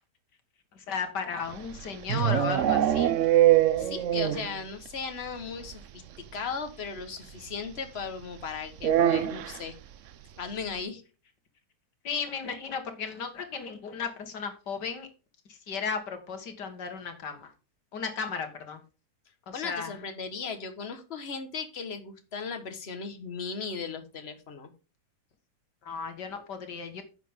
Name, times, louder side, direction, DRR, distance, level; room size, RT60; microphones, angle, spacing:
voice 1, 0.7-3.1 12.0-15.1 15.5-17.5 17.9-18.8 19.5-20.0 25.8-27.0, left 5 dB, 85° left, 7 dB, 2.3 m, -35 dB
sound 1, 1.5-4.6 4.9-5.0 5.3-5.4 5.6-5.7 7.0-7.1 8.8-9.6, right 12 dB, 65° right, 0.8 m, -23 dB
voice 2, 3.8-6.0 6.3-9.7 10.4-11.0 19.5-24.7, left 5 dB, 40° left, 7 dB, 1.6 m, -37 dB
10.5 x 7.2 x 3.7 m, 0.33 s
omnidirectional pair, 1.8 m